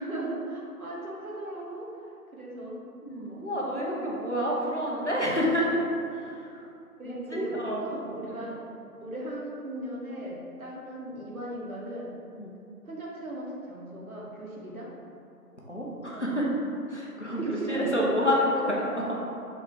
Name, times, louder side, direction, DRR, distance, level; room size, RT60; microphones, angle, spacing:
voice 1, 0.0-1.9 2.3-2.8 7.0-8.6 9.0-12.1 12.9-14.9 17.5-18.7, right 1 dB, 60° right, -4 dB, 0.8 m, -36 dB
voice 2, 3.0-5.8 6.1-6.6 7.0-7.9 8.3-8.5 12.3-12.5 15.7-16.5 16.9-19.1, equal, 50° left, -5 dB, 0.5 m, -29 dB
3.4 x 2.1 x 3.7 m, 2.6 s
figure-of-eight pair, 170°, 47 cm